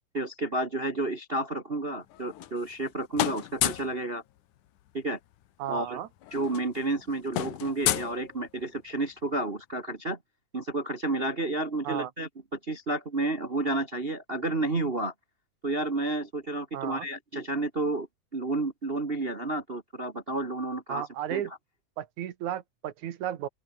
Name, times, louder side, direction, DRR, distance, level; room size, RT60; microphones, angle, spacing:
voice 1, 0.1-4.2 4.9-5.2 5.7-6.0 6.3-10.2 10.5-15.1 15.6-18.1 18.3-21.0 21.3-21.4, right 2 dB, 30° right, 1.0 m, -31 dB
sound 1, 2.1-2.9 3.1-4.0 5.3-5.4 5.7-5.9 6.2-8.8, left 13 dB, 80° left, 2.7 m, -31 dB
voice 2, 5.6-6.1 11.8-12.1 16.7-17.1 20.9-21.5 22.0-23.5, right 11 dB, 70° right, 2.8 m, -34 dB
omnidirectional pair, 3.5 m